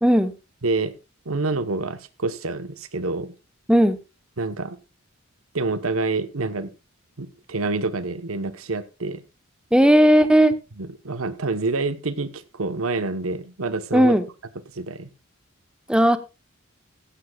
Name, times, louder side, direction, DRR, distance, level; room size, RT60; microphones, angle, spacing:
voice 1, 0.0-0.3 3.7-4.0 9.7-10.5 13.9-14.2 15.9-16.2, equal, 5° right, 9 dB, 1.1 m, -16 dB
voice 2, 0.6-0.9 1.2-3.3 4.4-4.8 5.5-6.7 7.2-9.2 10.8-14.2 14.7-15.1, right 3 dB, 85° right, 11 dB, 1.2 m, -27 dB
16.0 x 15.0 x 2.4 m, 0.27 s
head